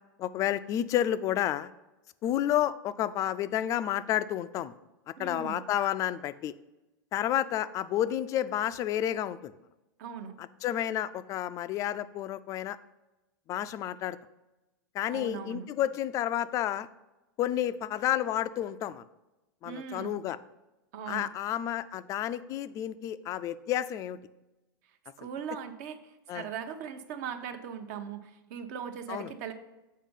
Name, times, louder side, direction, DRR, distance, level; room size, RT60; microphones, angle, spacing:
voice 1, 0.2-1.7 2.2-4.7 5.2-6.5 7.1-9.5 10.4-12.8 13.5-14.2 14.9-16.9 17.4-19.0 19.6-20.4 21.1-24.2 26.3-26.5 29.1-29.3, left 11 dB, 30° left, 14 dB, 0.3 m, -30 dB
voice 2, 5.2-5.6 10.0-10.3 15.1-15.7 19.6-20.2 20.9-21.3 25.2-29.5, right 7 dB, 55° right, 7 dB, 0.9 m, -39 dB
7.4 x 4.4 x 5.4 m, 1.0 s
hypercardioid pair, 135°, 11 cm